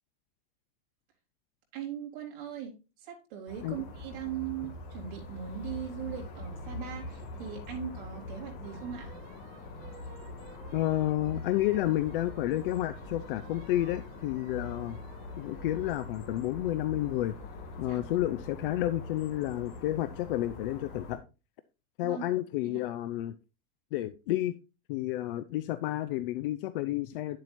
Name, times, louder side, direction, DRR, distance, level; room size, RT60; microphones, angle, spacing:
voice 1, 1.7-2.7 3.0-9.1 17.9-18.1 18.6-18.7 22.0-22.2 22.6-22.8, right 9 dB, 60° right, 3.5 m, -40 dB
sound 1, 3.5-21.2, left 2 dB, 45° left, 2.3 m, -43 dB
sound 2, 8.6-16.1, right 12 dB, 85° right, 1.4 m, -56 dB
voice 2, 10.7-15.0 15.4-17.4 17.8-21.2 22.0-23.3 23.9-24.5 24.9-27.4, left 14 dB, 65° left, 0.6 m, -30 dB
10.0 x 7.6 x 2.6 m
supercardioid pair, 165°, 29 cm